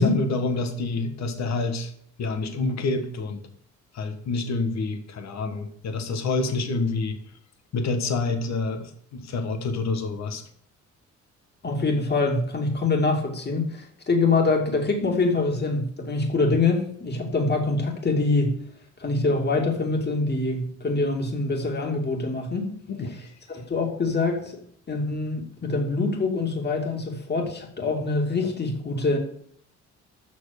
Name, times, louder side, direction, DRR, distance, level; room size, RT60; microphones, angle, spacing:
voice 1, 0.0-1.9 2.2-3.4 3.9-7.2 7.7-10.4 22.9-23.1, left 3 dB, 65° left, 7 dB, 1.6 m, -27 dB
voice 2, 11.6-18.5 19.0-22.7 23.1-23.2 23.5-24.6 24.9-29.2, left 3 dB, 35° left, 1 dB, 2.5 m, -24 dB
7.5 x 6.4 x 6.6 m, 0.62 s
cardioid pair, 90°, 30 cm